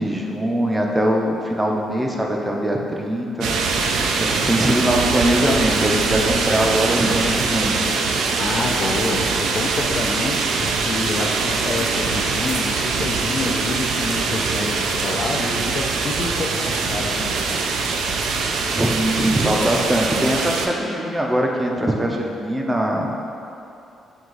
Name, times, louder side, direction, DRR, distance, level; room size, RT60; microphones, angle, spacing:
voice 1, 0.0-3.5 4.1-7.8 18.8-23.1, right 1 dB, 15° right, 0 dB, 0.5 m, -21 dB
sound 1, 3.4-20.7, right 4 dB, 80° right, 0.3 m, -23 dB
voice 2, 8.4-17.6, left 3 dB, 50° left, 1 dB, 0.4 m, -28 dB
4.6 x 2.3 x 3.8 m, 2.7 s
cardioid pair, 90°, 0 cm